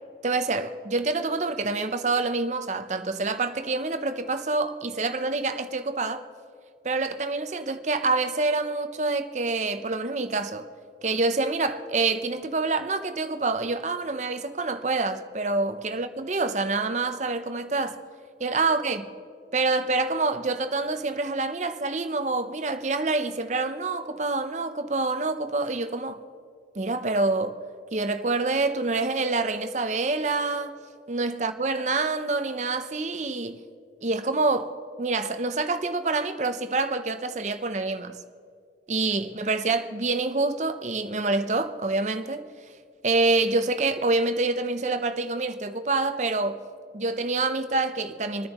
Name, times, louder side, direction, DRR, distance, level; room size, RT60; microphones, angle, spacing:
voice 1, 0.2-6.2 6.8-10.7 11.0-18.0 18.4-19.1 19.5-26.2 26.8-27.6 27.9-30.7 31.1-33.6 34.0-38.2 38.9-42.4 43.0-46.6 46.9-48.5, right 3 dB, 40° right, 0.7 m, -26 dB
26.0 x 10.0 x 3.0 m
head